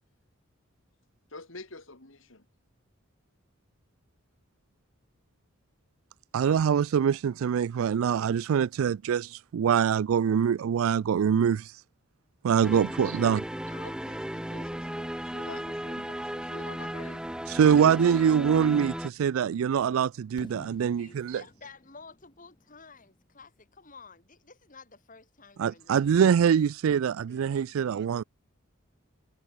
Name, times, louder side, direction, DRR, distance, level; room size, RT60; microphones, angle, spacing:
voice 1, 1.3-2.5 13.1-13.3 13.7-17.4, left 3 dB, 70° left, 3.5 m, -47 dB
voice 2, 6.3-11.8 12.4-13.4 17.5-21.4 25.6-28.2, right 7 dB, 90° right, 0.3 m, -24 dB
sound 1, 12.6-19.1, equal, 5° right, 0.9 m, -35 dB
Fireworks, 20.4-24.2, left 1 dB, 25° left, 1.0 m, -52 dB
voice 3, 21.0-26.2, left 4 dB, 40° left, 4.3 m, -52 dB
voice 4, 27.3-28.3, right 4 dB, 60° right, 6.7 m, -58 dB
head